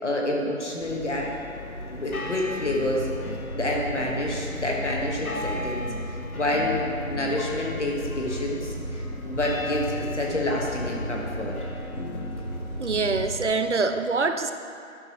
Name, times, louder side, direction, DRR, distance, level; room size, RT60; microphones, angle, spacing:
voice 1, 0.0-1.3 1.9-3.1 3.5-6.8 7.0-11.5, left 1 dB, 55° left, -2 dB, 1.5 m, -28 dB
sound 1, 0.8-13.3, left 2 dB, 85° left, 1.1 m, -37 dB
Fire, 2.6-13.4, right 1 dB, 25° left, 1.1 m, -35 dB
voice 2, 12.8-14.5, right 4 dB, 55° right, 8 dB, 0.5 m, -25 dB
11.0 x 5.5 x 3.0 m, 2.6 s
figure-of-eight pair, 175°, 42 cm